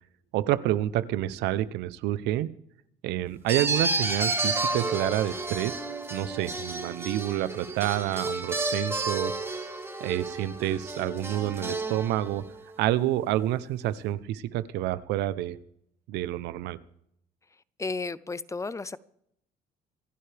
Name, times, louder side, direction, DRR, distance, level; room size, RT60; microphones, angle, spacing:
voice 1, 0.3-2.5 3.0-5.8 6.1-9.4 10.0-12.4 12.8-15.6 16.1-16.8, right 14 dB, 90° right, 16 dB, 0.8 m, -28 dB
sound 1, 3.5-12.6, right 2 dB, 15° right, 2.4 m, -31 dB
voice 2, 17.8-19.0, left 3 dB, 20° left, 18 dB, 0.5 m, -33 dB
26.5 x 11.0 x 3.5 m, 0.73 s
cardioid pair, 110°, 17 cm